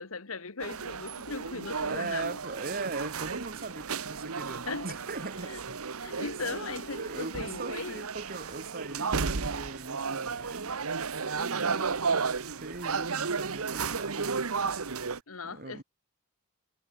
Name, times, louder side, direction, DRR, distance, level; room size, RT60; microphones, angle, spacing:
voice 1, 0.0-2.4 4.7-4.9 5.4-5.6 6.0-8.1 15.3-15.8, left 4 dB, 70° left, 1.6 m, -38 dB
sound 1, 0.6-15.2, right 5 dB, 75° right, 1.2 m, -33 dB
voice 2, 1.8-5.8 6.9-10.8 11.2-14.5 15.4-15.8, right 3 dB, 45° right, 1.7 m, -40 dB
head